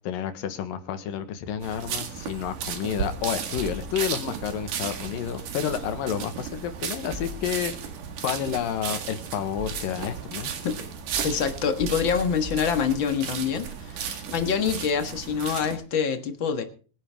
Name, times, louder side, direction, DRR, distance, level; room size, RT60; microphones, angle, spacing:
voice 1, 0.0-7.7 8.2-10.5, left 9 dB, 85° left, 10 dB, 3.0 m, -30 dB
sound 1, 1.6-15.8, right 7 dB, 70° right, 3.4 m, -35 dB
sound 2, 3.6-4.5 7.1-8.0 8.9-10.2 11.1-13.4, left 2 dB, 20° right, 1.5 m, -40 dB
voice 2, 11.2-16.6, left 6 dB, 45° left, 7 dB, 1.7 m, -26 dB
23.5 x 9.7 x 3.5 m, 0.38 s
omnidirectional pair, 4.0 m